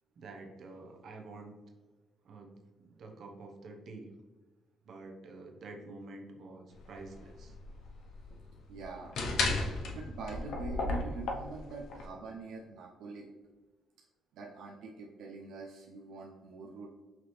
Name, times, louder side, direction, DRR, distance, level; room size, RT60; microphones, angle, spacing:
voice 1, 0.2-1.6 2.2-4.1 4.8-7.6, right 3 dB, 65° right, 2 dB, 0.9 m, -48 dB
sound 1, 6.7-12.0, left 3 dB, 75° left, 0.7 m, -35 dB
voice 2, 8.7-9.1 9.9-13.3 14.3-16.9, right 3 dB, 85° right, -1 dB, 0.5 m, -44 dB
5.9 x 2.8 x 3.2 m, 1.3 s
cardioid pair, 90°, 0 cm